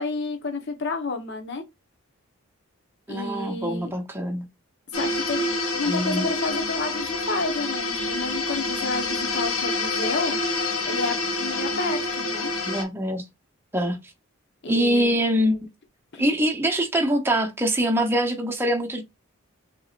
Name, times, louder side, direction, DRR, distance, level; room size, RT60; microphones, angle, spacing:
voice 1, 0.0-1.6 3.1-3.9 4.9-10.4 10.8-12.5 14.6-15.2 16.1-16.2, left 3 dB, 50° left, 1.0 m, -30 dB
voice 2, 3.1-4.5 5.9-6.3 12.6-13.2 13.7-14.0 14.6-15.7 16.2-19.0, equal, 10° right, 0.8 m, -24 dB
sound 1, 4.9-12.8, left 2 dB, 85° left, 1.6 m, -27 dB
6.0 x 3.0 x 2.5 m
head